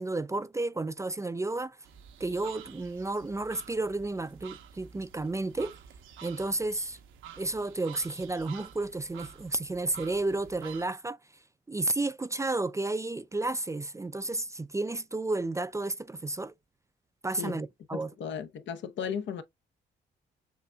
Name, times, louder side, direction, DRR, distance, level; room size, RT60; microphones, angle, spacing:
voice 1, 0.0-1.8 2.2-5.8 6.2-7.0 7.4-11.2 11.7-16.5 17.2-18.1, right 2 dB, 15° right, 0.4 m, -32 dB
sound 1, 1.8-10.9, right 8 dB, 85° right, 1.0 m, -50 dB
voice 2, 17.9-19.4, left 7 dB, 65° left, 0.8 m, -35 dB
6.6 x 2.6 x 2.2 m
cardioid pair, 90°, 20 cm